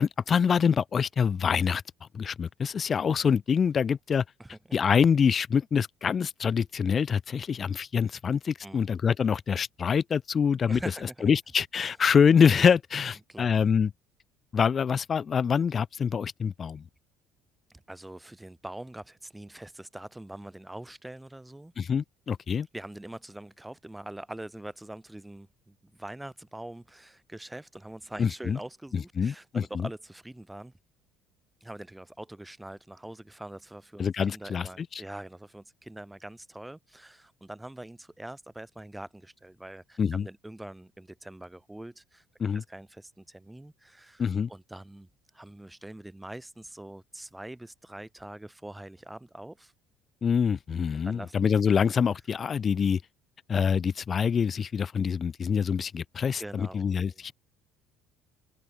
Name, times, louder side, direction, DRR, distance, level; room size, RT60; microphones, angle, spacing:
voice 1, 0.0-4.2 4.7-10.8 11.2-13.9 14.5-16.8 21.8-22.7 28.2-28.6 28.9-29.9 34.0-35.0 40.0-40.3 42.4-42.6 44.2-44.5 50.2-53.0 53.5-57.3, left 6 dB, 40° left, 0.3 m, -25 dB
voice 2, 4.4-4.8 8.6-8.9 10.7-11.3 13.1-13.5 17.9-21.7 22.7-30.7 31.6-42.2 42.5-45.1 45.3-49.7 50.9-51.5 56.4-57.3, right 1 dB, 10° right, 2.1 m, -44 dB
hypercardioid pair, 65°, 0 cm